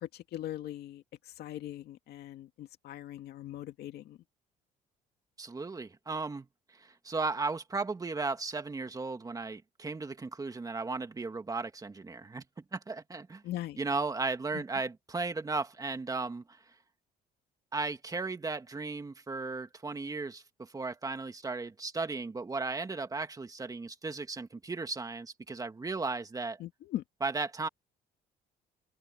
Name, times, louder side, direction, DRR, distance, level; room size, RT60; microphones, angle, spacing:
voice 1, 0.0-1.0 1.4-4.2 13.4-13.8 14.5-14.6 26.6-27.0, left 13 dB, 70° left, 2.3 m, -40 dB
voice 2, 5.4-6.5 6.7-13.4 13.8-16.6 17.7-26.6 27.2-27.7, right 3 dB, 20° right, 2.1 m, -35 dB
open air
cardioid pair, 110°, 17 cm